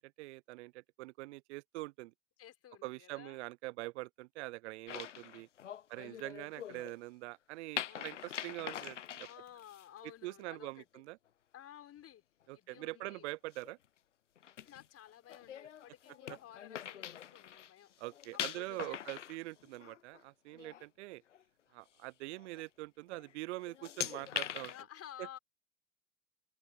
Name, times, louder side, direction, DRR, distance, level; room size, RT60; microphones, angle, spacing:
voice 1, 0.0-2.1 2.8-5.5 5.9-9.3 10.0-11.2 12.5-13.8 16.3-16.4 18.0-21.2 21.7-24.7 25.2-25.3, right 21 dB, 70° right, 0.5 m, -44 dB
voice 2, 2.4-3.5 5.0-5.1 5.9-6.3 7.9-8.1 9.2-11.0 11.5-12.2 12.5-13.2 14.6-17.9 18.5-19.2 20.6-20.7 24.7-25.4, left 11 dB, 40° left, 6.2 m, -54 dB
sound 1, 4.9-7.0 7.7-9.9 12.8-13.1 13.5-13.7 14.4-17.7 18.0-20.2 20.5-20.8 21.3-21.4 22.3-22.6 23.1-23.3 23.6-24.8, left 10 dB, 90° left, 0.7 m, -43 dB
open air
hypercardioid pair, 75°, 36 cm